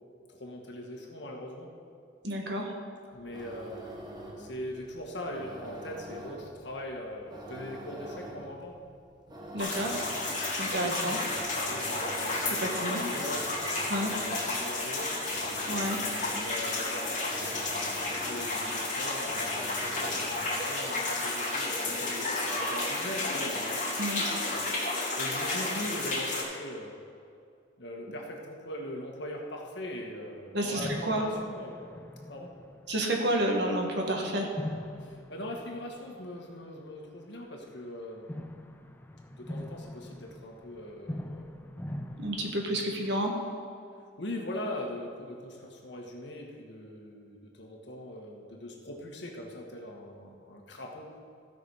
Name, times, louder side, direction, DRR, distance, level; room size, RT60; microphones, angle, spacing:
voice 1, 0.3-1.7 3.1-3.8 4.4-8.8 10.7-11.3 11.6-15.2 16.3-17.1 18.2-23.9 24.2-24.7 25.2-27.0 27.8-31.8 32.3-32.5 35.0-38.3 39.3-41.5 44.2-51.1, left 1 dB, 70° left, 0 dB, 1.6 m, -41 dB
voice 2, 2.2-2.7 9.5-10.0 10.6-11.2 12.6-13.0 13.9-14.1 15.7-16.0 24.0-24.2 30.5-30.8 31.1-31.2 32.9-34.5 42.2-43.3, right 1 dB, 65° right, 1 dB, 1.6 m, -30 dB
sound 1, 3.1-20.6, right 1 dB, 25° right, 1.2 m, -45 dB
sound 2, 9.6-26.4, left 2 dB, 45° left, 2.4 m, -32 dB
sound 3, 29.9-30.0 30.8-33.6 34.6-36.7 38.3-43.3, left 1 dB, 10° left, 0.4 m, -42 dB
15.5 x 6.0 x 4.9 m, 2.4 s
head